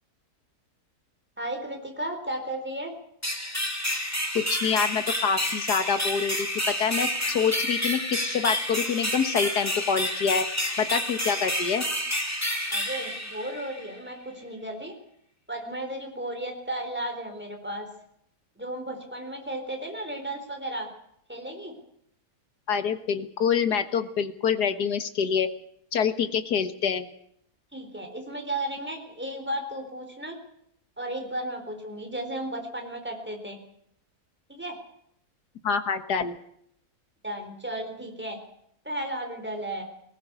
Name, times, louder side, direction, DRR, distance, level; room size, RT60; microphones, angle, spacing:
voice 1, 1.4-2.9 12.7-15.0 15.5-17.9 18.6-20.9 21.3-21.7 27.7-30.4 31.0-33.6 34.5-34.8 37.2-38.4 38.8-39.8, right 1 dB, 5° right, 4 dB, 4.0 m, -34 dB
sound 1, 3.2-13.9, left 1 dB, 10° left, 2.7 m, -29 dB
voice 2, 4.4-10.5 10.8-11.8 22.7-25.5 25.9-27.1 35.6-36.4, left 6 dB, 85° left, 10 dB, 2.0 m, -26 dB
19.5 x 18.5 x 8.2 m, 0.71 s
omnidirectional pair, 1.7 m